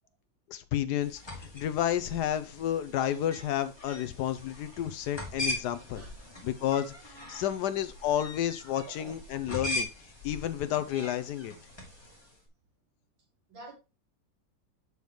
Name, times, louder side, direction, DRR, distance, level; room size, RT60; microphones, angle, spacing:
voice 1, 0.5-6.0 6.4-9.9 10.2-11.5, left 11 dB, 70° left, 1.0 m, -31 dB
sound 1, 1.0-12.3, left 1 dB, 15° left, 2.2 m, -41 dB
voice 2, 8.6-9.2 13.5-13.7, right 3 dB, 90° right, 3.6 m, -48 dB
6.9 x 6.4 x 3.0 m
omnidirectional pair, 2.1 m